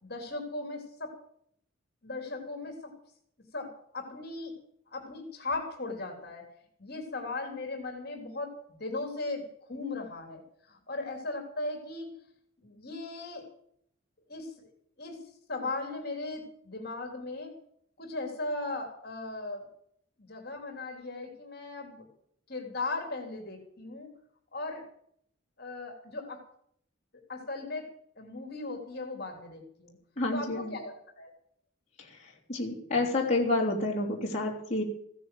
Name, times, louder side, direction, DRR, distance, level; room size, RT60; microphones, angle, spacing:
voice 1, 0.0-1.2 2.0-3.0 3.5-4.5 4.9-6.5 6.8-10.4 10.7-12.1 12.6-13.5 14.3-14.5 15.0-15.2 15.5-17.6 18.0-19.7 20.2-22.1 22.5-24.2 24.5-24.9 25.6-26.4 27.3-27.9 28.2-30.0 30.3-31.3, left 2 dB, 50° left, 3 dB, 3.4 m, -37 dB
voice 2, 30.2-30.7 32.5-34.8, left 2 dB, 35° left, -3 dB, 3.4 m, -29 dB
16.0 x 10.0 x 7.7 m, 0.67 s
head